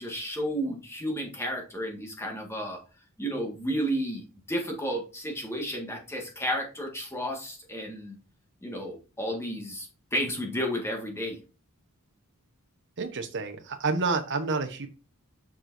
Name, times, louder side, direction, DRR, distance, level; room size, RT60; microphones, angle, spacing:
voice 1, 0.0-2.8 3.2-8.2 8.6-11.4, equal, 10° left, 1 dB, 1.8 m, -32 dB
voice 2, 13.0-14.9, right 4 dB, 55° right, 7 dB, 1.1 m, -29 dB
7.5 x 6.0 x 2.7 m, 0.31 s
head